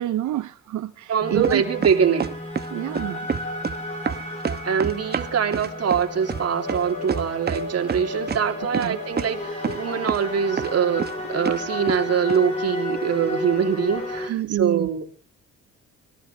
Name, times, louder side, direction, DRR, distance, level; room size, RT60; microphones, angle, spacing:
voice 1, 0.0-1.6 2.7-3.3 8.7-9.0 14.3-14.9, right 13 dB, 75° right, 11 dB, 0.7 m, -27 dB
voice 2, 1.1-2.3 4.6-15.0, right 7 dB, 55° right, 4 dB, 3.0 m, -23 dB
sound 1, 1.2-14.3, left 1 dB, 20° left, 7.0 m, -32 dB
sound 2, 1.4-2.7 3.0-3.8 4.1-7.6 7.9-8.4 8.7-8.9 9.2-9.3 9.6-9.8 10.1-10.3 10.6-11.1 11.5-12.0 12.3-12.4, right 6 dB, 35° right, 1.0 m, -27 dB
24.5 x 18.0 x 3.3 m, 0.40 s
cardioid pair, 90°, 30 cm